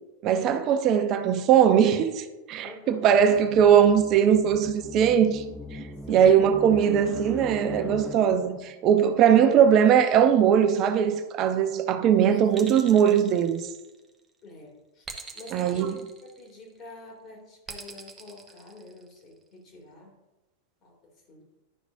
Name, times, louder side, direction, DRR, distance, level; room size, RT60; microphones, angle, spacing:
voice 1, 0.2-5.4 5.7-13.6 15.5-16.0, right 8 dB, 35° right, 0.7 m, -20 dB
voice 2, 2.6-3.1 6.1-6.5 12.3-12.4 14.4-15.1 15.3-16.0 16.4-20.1 20.8-20.9 21.3-21.4, left 2 dB, 30° left, 2.6 m, -46 dB
sound 1, 3.2-8.7, left 1 dB, ahead, 0.6 m, -40 dB
sound 2, 12.5-14.2 15.0-16.7 17.7-19.3, right 4 dB, 15° right, 1.0 m, -43 dB
11.0 x 6.1 x 2.6 m
figure-of-eight pair, 90°, 0 cm